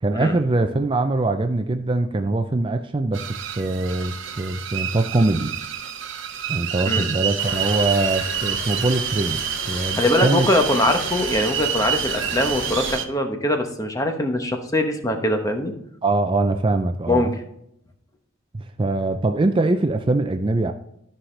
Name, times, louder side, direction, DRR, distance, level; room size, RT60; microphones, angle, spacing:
voice 1, 0.0-5.5 6.5-10.5 16.0-17.3 18.5-20.7, right 2 dB, 25° right, 6 dB, 0.4 m, -23 dB
sound 1, 3.1-13.1, right 9 dB, 65° right, 0.8 m, -28 dB
sound 2, 7.4-13.0, left 1 dB, 65° left, 3.6 m, -34 dB
voice 2, 9.9-15.7 17.1-17.3, left 1 dB, 15° left, 4 dB, 0.9 m, -22 dB
12.5 x 5.6 x 3.3 m, 0.76 s
head